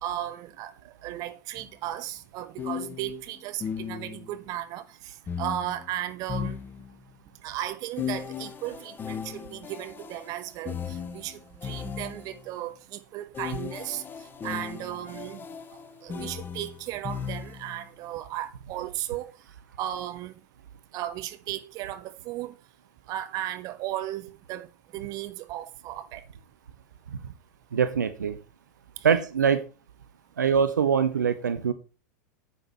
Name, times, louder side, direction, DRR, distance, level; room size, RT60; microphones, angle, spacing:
voice 1, 0.0-6.6 7.4-14.0 14.4-15.5 16.0-19.3 19.8-20.4 20.9-22.5 23.1-26.2, right 13 dB, 40° right, 1.4 m, -35 dB
sound 1, 1.6-1.7 2.6-4.4 5.3-7.2 8.0-12.5 13.3-17.8, left 7 dB, 20° left, 0.9 m, -37 dB
voice 2, 27.7-28.4 29.0-29.6 30.4-31.7, right 7 dB, 70° right, 1.1 m, -23 dB
9.7 x 9.0 x 4.3 m
figure-of-eight pair, 90°, 10 cm